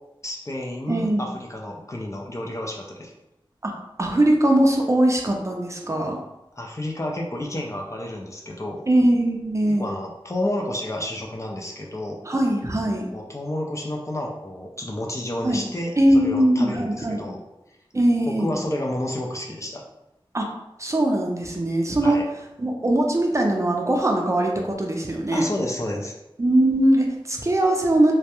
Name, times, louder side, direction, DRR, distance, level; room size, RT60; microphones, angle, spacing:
voice 1, 0.2-3.1 6.6-8.8 9.8-12.2 13.1-17.4 18.3-19.8 22.0-22.2 25.3-26.1, left 1 dB, 35° left, 0 dB, 0.4 m, -30 dB
voice 2, 0.9-1.3 3.6-3.7 4.0-6.2 8.9-9.9 12.3-13.0 15.4-15.7 16.0-17.3 17.9-18.5 20.3-20.5 20.8-22.2 22.6-25.5 26.4-28.1, right 1 dB, 35° right, 1 dB, 0.4 m, -21 dB
2.3 x 2.1 x 2.8 m, 0.90 s
wide cardioid pair, 55°, 9 cm